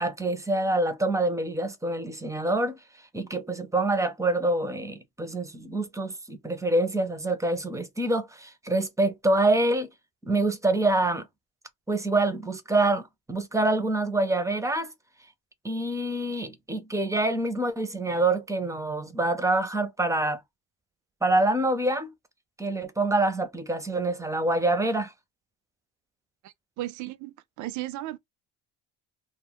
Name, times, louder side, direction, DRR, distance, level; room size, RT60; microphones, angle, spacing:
voice 1, 0.0-2.8 3.1-9.9 10.2-11.3 11.9-14.9 15.6-20.4 21.2-22.1 22.6-25.1, right 2 dB, 10° right, 0.5 m, -26 dB
voice 2, 26.4-28.2, right 15 dB, 55° right, 0.4 m, -36 dB
2.3 x 2.0 x 3.4 m
cardioid pair, 100°, 36 cm